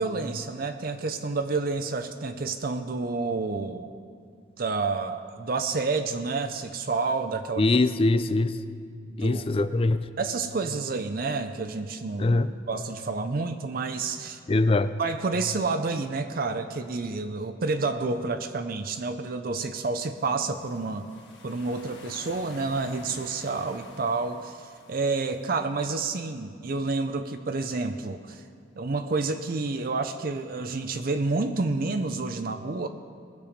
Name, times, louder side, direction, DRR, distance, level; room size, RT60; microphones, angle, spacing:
voice 1, 0.0-4.0 4.6-7.6 9.1-9.5 10.2-12.4 12.7-14.4 15.0-21.1 21.4-28.4 28.8-32.9, right 3 dB, 50° right, 7 dB, 0.5 m, -29 dB
voice 2, 7.6-8.6 9.2-10.1 12.2-12.5 14.5-15.0, left 2 dB, 30° left, 13 dB, 0.4 m, -23 dB
sound 1, 20.2-25.6, left 2 dB, 65° left, 1.8 m, -49 dB
19.5 x 6.9 x 5.1 m, 2.3 s
head